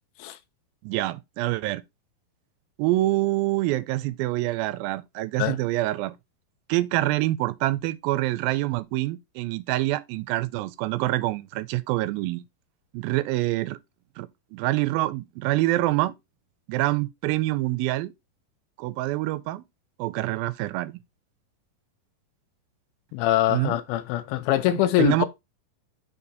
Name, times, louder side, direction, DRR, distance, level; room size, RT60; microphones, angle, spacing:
voice 1, 0.8-1.8 2.8-6.2 6.7-12.4 12.9-13.8 14.2-16.1 16.7-18.1 18.8-19.6 20.0-20.9 23.5-23.8 25.0-25.3, right 17 dB, 85° right, 2.3 m, -26 dB
voice 2, 23.1-25.3, left 14 dB, 85° left, 2.5 m, -23 dB
5.5 x 4.3 x 4.0 m
omnidirectional pair, 4.3 m